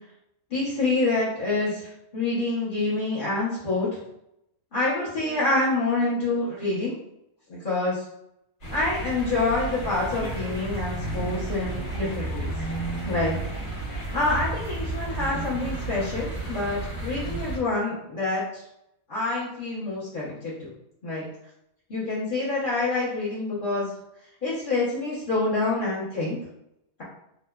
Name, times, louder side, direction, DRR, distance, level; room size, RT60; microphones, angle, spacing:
voice 1, 0.5-4.0 4.7-6.9 7.5-8.0 8.7-12.5 13.1-13.4 14.1-18.6 19.1-20.7 21.0-21.3 21.9-23.9 24.4-26.4, left 2 dB, 50° left, -9 dB, 1.1 m, -27 dB
sound 1, 8.6-17.6, right 2 dB, 90° left, 1.5 m, -32 dB
2.9 x 2.0 x 2.2 m, 0.80 s
omnidirectional pair, 1.1 m